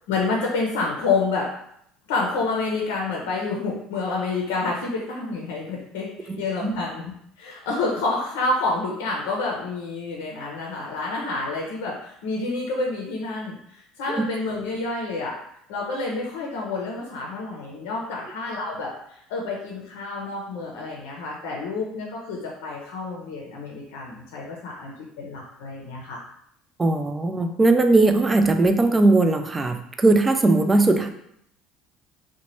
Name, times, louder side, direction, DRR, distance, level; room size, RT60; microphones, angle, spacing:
voice 1, 0.1-1.5 2.1-7.0 7.4-15.4 15.7-26.2, left 3 dB, 70° left, -2 dB, 0.6 m, -28 dB
voice 2, 6.3-6.8 14.1-14.2 26.8-31.1, right 2 dB, 20° right, 7 dB, 0.4 m, -19 dB
2.8 x 2.1 x 3.0 m, 0.73 s
hypercardioid pair, 70°, 0 cm